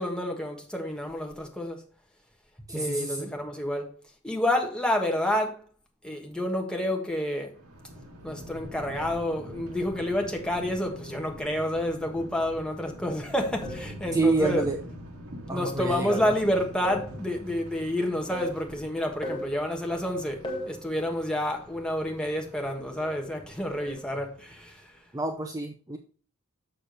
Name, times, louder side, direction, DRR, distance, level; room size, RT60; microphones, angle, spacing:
voice 1, 0.0-1.8 2.6-3.9 4.2-5.6 6.0-7.5 8.2-14.6 15.5-24.9, left 1 dB, 5° left, 1.3 m, -29 dB
voice 2, 2.7-3.3 14.1-14.8 15.5-16.3 25.1-26.0, right 3 dB, 15° right, 0.6 m, -28 dB
Thunder, 7.5-24.9, equal, 80° right, 1.8 m, -44 dB
sound 1, 13.6-13.9 14.4-14.7 16.1-16.4 16.8-17.2 18.3-18.6 19.2-19.5 20.4-20.8 23.0-23.3 23.8-24.0, left 1 dB, 20° left, 1.5 m, -36 dB
6.7 x 6.7 x 3.9 m
head